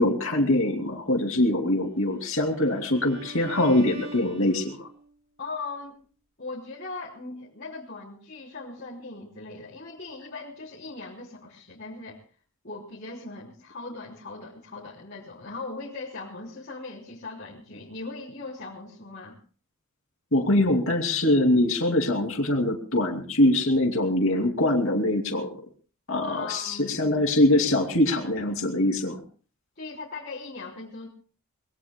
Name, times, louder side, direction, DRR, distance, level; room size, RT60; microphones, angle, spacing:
voice 1, 0.0-4.9 20.3-25.5 26.1-29.2, left 1 dB, 65° left, 3 dB, 2.7 m, -23 dB
Bowed string instrument, 2.0-5.1, right 2 dB, 50° right, 7.0 m, -43 dB
voice 2, 5.4-6.0 6.4-12.2 12.6-19.4 26.2-27.0 29.8-31.1, left 3 dB, 50° left, -6 dB, 3.5 m, -39 dB
24.0 x 21.5 x 2.2 m, 0.39 s
head